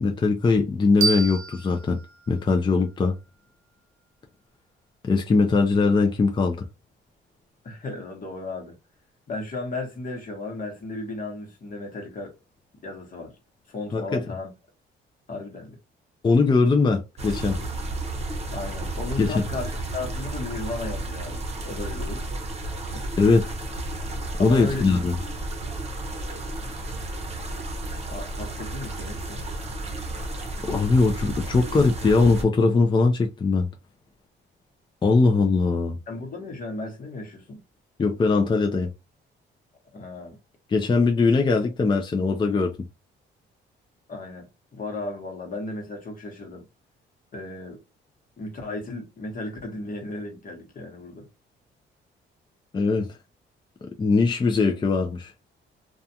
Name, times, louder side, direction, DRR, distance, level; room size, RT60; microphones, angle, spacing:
voice 1, 0.0-2.0 2.3-3.1 5.0-6.7 13.9-14.2 16.2-17.6 19.2-19.4 23.2-23.4 24.4-25.2 30.7-33.7 35.0-36.0 38.0-38.9 40.7-42.7 52.7-53.1 54.0-55.3, left 4 dB, 25° left, 0.5 m, -21 dB
sound 1, 1.0-3.8, right 5 dB, 85° right, 0.6 m, -31 dB
voice 2, 7.6-8.8 9.3-12.3 12.8-13.3 13.7-14.5 15.3-15.8 18.5-22.2 22.9-23.1 24.4-25.0 28.1-29.4 36.1-37.6 39.9-40.4 44.1-46.6 47.3-47.8 48.4-51.3, left 2 dB, 45° left, 1.1 m, -35 dB
sound 2, 17.2-32.4, right 2 dB, 30° right, 0.8 m, -32 dB
2.4 x 2.3 x 2.7 m
cardioid pair, 90°, 20 cm